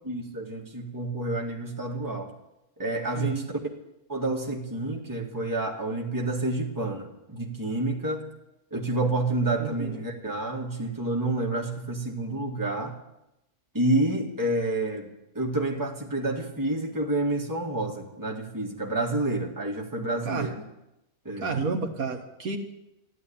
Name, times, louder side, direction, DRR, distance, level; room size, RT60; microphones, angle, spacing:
voice 1, 0.0-2.3 2.8-3.5 4.1-8.3 8.7-13.0 13.7-15.1 15.4-20.6 21.3-21.5, right 2 dB, 15° right, 0 dB, 2.0 m, -29 dB
voice 2, 3.1-3.5 9.6-9.9 20.2-20.5 21.4-22.6, right 4 dB, 75° right, 3 dB, 1.9 m, -31 dB
14.0 x 11.5 x 8.7 m, 0.89 s
omnidirectional pair, 1.5 m